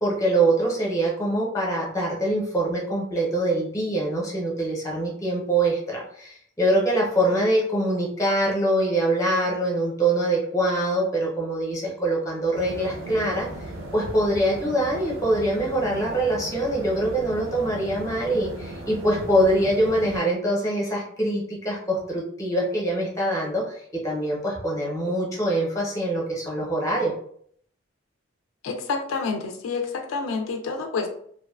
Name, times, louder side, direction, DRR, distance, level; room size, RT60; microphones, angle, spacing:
voice 1, 0.0-13.5 13.9-23.7 24.0-27.1, right 1 dB, 15° left, -3 dB, 0.7 m, -24 dB
sound 1, 12.5-20.2, right 1 dB, 75° right, 0.5 m, -37 dB
voice 2, 28.6-31.1, left 4 dB, 70° left, 3 dB, 0.3 m, -28 dB
2.6 x 2.2 x 2.3 m, 0.63 s
head